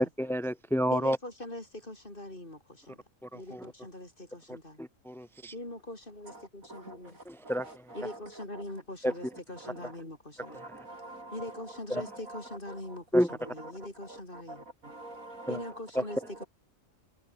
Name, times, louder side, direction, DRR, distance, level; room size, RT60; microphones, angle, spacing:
voice 1, 0.0-1.2 3.5-3.6 4.8-5.5 7.3-7.7 9.0-9.1 13.1-13.3 15.5-15.6, equal, ahead, 1.8 m, -28 dB
voice 2, 0.9-3.0 3.3-4.8 5.5-7.2 7.9-10.6 11.3-14.7 15.5-16.4, left 1 dB, 40° left, 5.7 m, -42 dB
voice 3, 6.3-8.2 8.5-8.6 9.3-9.9 10.4-11.6 11.9-12.7 13.3-13.7 14.0-15.7 16.1-16.5, right 2 dB, 80° right, 6.7 m, -47 dB
omnidirectional pair, 1.4 m